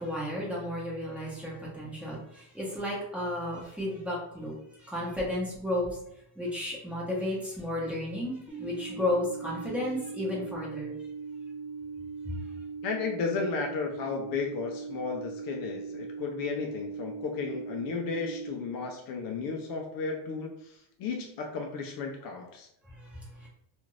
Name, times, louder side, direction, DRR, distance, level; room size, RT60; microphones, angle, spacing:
voice 1, 0.0-4.5 4.8-6.0 6.4-10.9 23.0-23.5, left 1 dB, 5° right, -6 dB, 0.8 m, -33 dB
sound 1, 8.5-18.5, right 5 dB, 35° right, 1.1 m, -40 dB
voice 2, 12.8-22.7, left 4 dB, 55° left, 2 dB, 0.5 m, -34 dB
2.5 x 2.4 x 3.1 m, 0.72 s
cardioid pair, 140°, 42 cm